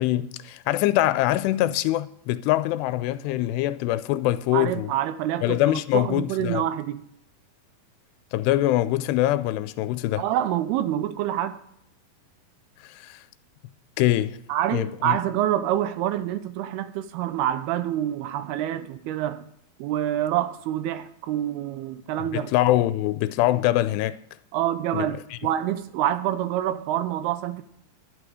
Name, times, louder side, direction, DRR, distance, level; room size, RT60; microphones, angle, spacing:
voice 1, 0.0-4.9 5.4-6.6 8.3-10.2 12.8-13.2 14.0-14.4 14.7-15.2 22.3-24.2 24.9-25.1, left 15 dB, 90° left, 2.7 m, -23 dB
voice 2, 4.5-7.0 10.2-11.6 14.5-19.5 19.8-22.5 24.5-27.6, right 12 dB, 80° right, 2.6 m, -27 dB
11.5 x 11.0 x 4.8 m
omnidirectional pair, 4.7 m